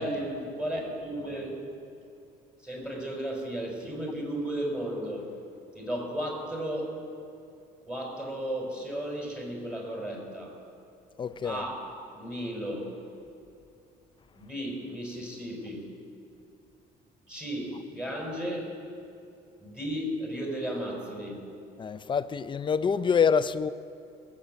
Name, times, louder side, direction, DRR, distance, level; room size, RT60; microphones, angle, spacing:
voice 1, 0.0-1.5 2.6-5.3 5.7-6.9 7.9-10.5 11.4-11.9 12.2-12.9 14.4-15.8 17.3-18.7 19.6-21.4, right 1 dB, 5° right, 4.7 m, -34 dB
voice 2, 11.2-11.6 21.8-23.7, left 6 dB, 30° left, 0.5 m, -26 dB
18.5 x 8.4 x 7.7 m
cardioid pair, 110°, 17 cm